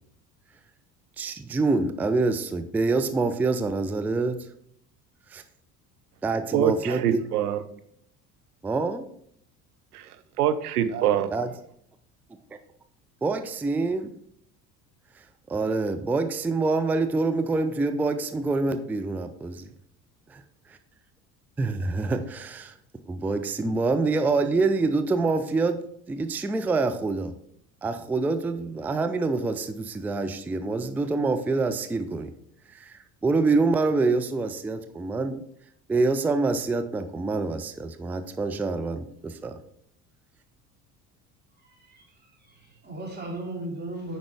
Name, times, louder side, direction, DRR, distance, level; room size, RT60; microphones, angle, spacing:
voice 1, 1.2-4.5 5.3-5.4 6.2-7.2 8.6-9.1 11.3-11.5 13.2-14.1 15.5-19.7 20.3-20.4 21.6-22.7 23.1-27.3 27.8-32.3 32.7-35.4 35.9-39.6, right 3 dB, 5° right, 0.4 m, -26 dB
voice 2, 6.5-7.6 9.9-10.1 10.4-11.3, right 10 dB, 75° right, 0.8 m, -24 dB
voice 3, 41.6-44.2, right 2 dB, 20° right, 3.0 m, -37 dB
8.7 x 5.2 x 3.4 m
figure-of-eight pair, 60°, 46 cm